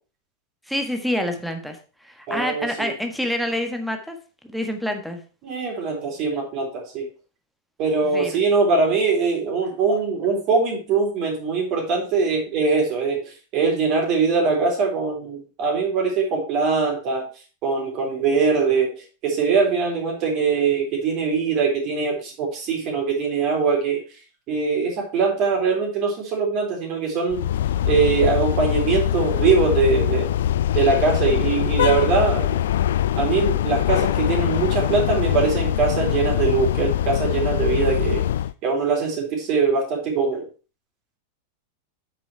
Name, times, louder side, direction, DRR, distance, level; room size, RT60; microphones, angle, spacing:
voice 1, 0.7-1.8 2.0-4.2 4.5-5.2 8.1-8.4, left 1 dB, ahead, 5 dB, 1.6 m, -27 dB
voice 2, 2.3-2.9 5.4-7.1 7.8-17.3 17.6-18.9 19.2-24.0 24.5-27.5 27.9-30.3 30.7-32.6 33.2-38.2 38.6-40.4, right 4 dB, 40° right, 0 dB, 3.8 m, -22 dB
sound 1, 27.3-38.5, left 11 dB, 60° left, 0.3 m, -23 dB
8.6 x 6.1 x 4.6 m, 0.35 s
figure-of-eight pair, 90°, 0 cm